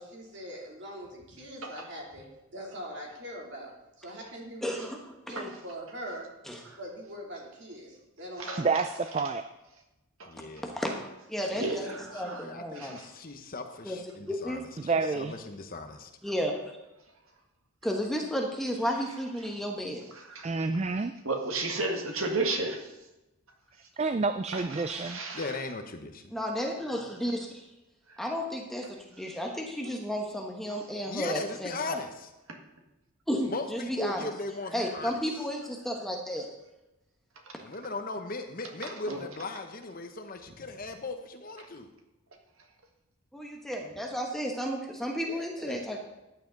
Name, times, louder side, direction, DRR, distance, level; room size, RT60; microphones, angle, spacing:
voice 1, 0.0-2.2 2.5-3.7 4.0-4.9 5.3-6.2 6.8-8.6, equal, 50° right, -2 dB, 3.0 m, -42 dB
voice 2, 4.6-5.0 5.3-5.5 6.5-6.6 10.6-10.9 11.3-11.8 12.1-12.9 13.8-14.0 14.3-14.6 15.1-15.2 16.2-16.5 17.8-20.0 26.3-27.4 28.2-28.9 29.2-32.0 33.3-34.3 34.7-36.5 43.3-46.0, equal, ahead, 0 dB, 1.1 m, -32 dB
voice 3, 8.6-9.4 14.8-15.3 20.4-21.1 24.0-25.2, right 4 dB, 30° right, 9 dB, 0.3 m, -28 dB
voice 4, 10.3-10.7 11.5-16.1 25.3-26.3 31.0-32.3 33.5-35.4 37.6-41.9 45.1-45.9, left 3 dB, 40° left, 6 dB, 0.9 m, -38 dB
voice 5, 11.6-12.5 12.7-13.1 20.3-20.5 21.2-22.9 24.5-25.5 30.7-30.8 39.1-39.2, right 2 dB, 70° right, 3 dB, 1.7 m, -33 dB
13.5 x 9.5 x 4.0 m, 0.99 s
head